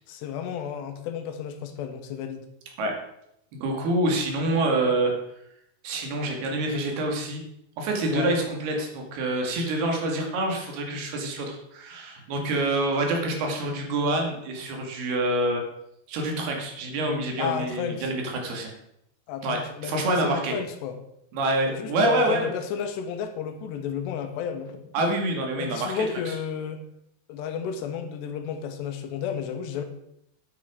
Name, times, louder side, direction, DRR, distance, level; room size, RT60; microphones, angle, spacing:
voice 1, 0.1-2.4 8.1-8.4 17.4-18.1 19.3-21.0 21.8-24.9 25.6-26.8 27.3-29.8, left 8 dB, 90° left, 7 dB, 3.2 m, -32 dB
voice 2, 3.5-5.1 5.8-7.4 7.8-15.6 16.1-18.7 19.4-20.6 21.3-22.5 24.9-26.4, right 2 dB, 70° right, 2 dB, 3.8 m, -26 dB
9.5 x 8.8 x 5.0 m, 0.77 s
omnidirectional pair, 4.9 m